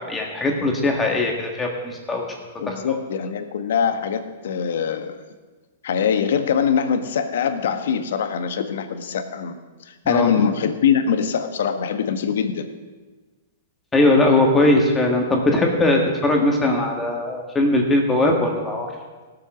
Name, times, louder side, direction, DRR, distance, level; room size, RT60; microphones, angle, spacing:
voice 1, 0.0-2.3 2.7-2.8 10.1-10.3 13.9-18.9, left 2 dB, 10° left, 1 dB, 1.8 m, -20 dB
voice 2, 2.6-5.2 5.8-9.6 9.9-12.7, left 7 dB, 70° left, 8 dB, 1.3 m, -23 dB
16.5 x 7.6 x 6.2 m, 1.3 s
hypercardioid pair, 145°, 0 cm